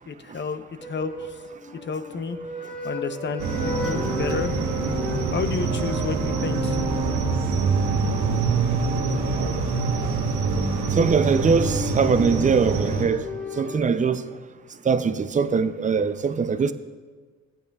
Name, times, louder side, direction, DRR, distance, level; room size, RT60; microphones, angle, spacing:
voice 1, 0.1-1.3 1.8-2.4 2.8-4.6 5.3-6.8, left 5 dB, 40° left, 0.7 m, -31 dB
sound 1, 0.8-9.8 11.3-13.8, left 1 dB, 5° left, 1.7 m, -37 dB
sound 2, 3.4-13.0, right 4 dB, 75° right, 1.2 m, -25 dB
voice 2, 11.0-13.2 13.6-14.2 14.9-16.7, right 5 dB, 25° right, 0.5 m, -22 dB
16.0 x 8.8 x 2.3 m
cardioid pair, 90°, 30 cm